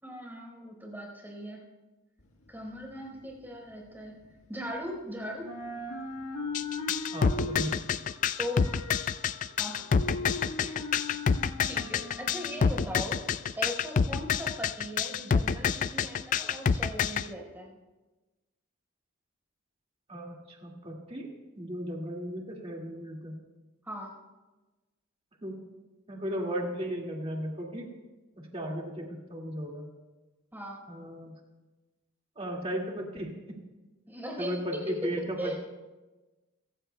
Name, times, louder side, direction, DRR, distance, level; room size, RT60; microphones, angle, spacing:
voice 1, 0.0-1.6 2.5-4.2 4.5-5.5 8.4-8.8 9.6-11.0 11.4-13.2 13.6-17.7 23.8-24.1 30.5-30.8 34.1-35.6, equal, 10° right, 0 dB, 4.3 m, -39 dB
sound 1, 2.2-5.1 5.3-13.5, left 2 dB, 90° left, 1.6 m, -40 dB
sound 2, 6.5-17.2, left 6 dB, 40° left, 0.3 m, -27 dB
voice 2, 7.1-7.7 10.0-10.1 20.1-21.3 21.6-23.4 25.4-25.6 26.1-27.9 28.4-29.9 30.9-31.3 32.4-33.6 34.4-35.5, equal, 25° right, -1 dB, 2.1 m, -35 dB
26.5 x 15.5 x 2.3 m, 1.2 s
head